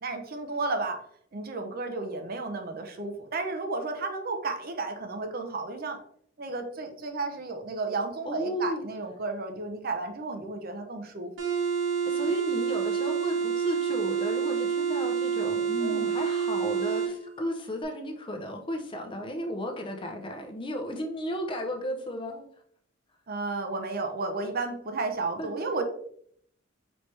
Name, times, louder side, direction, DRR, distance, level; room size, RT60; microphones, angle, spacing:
voice 1, 0.0-1.0 1.3-6.0 6.4-11.3 15.8-16.2 23.3-25.8, right 3 dB, 50° right, 6 dB, 0.6 m, -33 dB
voice 2, 8.3-8.8 12.1-22.5 25.4-25.7, equal, 25° left, 4 dB, 0.6 m, -34 dB
sound 1, 11.4-17.1, right 7 dB, 70° right, 1.2 m, -28 dB
4.3 x 3.2 x 3.2 m, 0.65 s
head